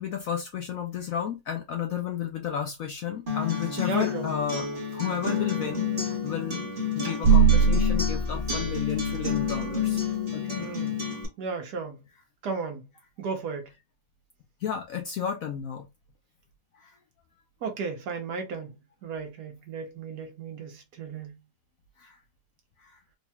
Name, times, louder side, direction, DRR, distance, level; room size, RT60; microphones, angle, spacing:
voice 1, 0.0-6.7 7.0-10.0 10.3-10.7 14.6-15.9 16.8-16.9 22.0-22.2 22.8-22.9, left 8 dB, 65° left, 0.8 m, -32 dB
Acoustic guitar, 3.3-11.2, left 6 dB, 30° right, 1.3 m, -29 dB
voice 2, 3.8-4.3 10.6-11.0 11.4-12.0 12.4-12.9 13.2-13.7 17.6-18.7 19.0-21.3, right 5 dB, 65° right, 1.3 m, -34 dB
sound 1, 7.2-9.7, right 7 dB, 85° right, 1.3 m, -22 dB
4.1 x 3.0 x 2.3 m
omnidirectional pair, 1.9 m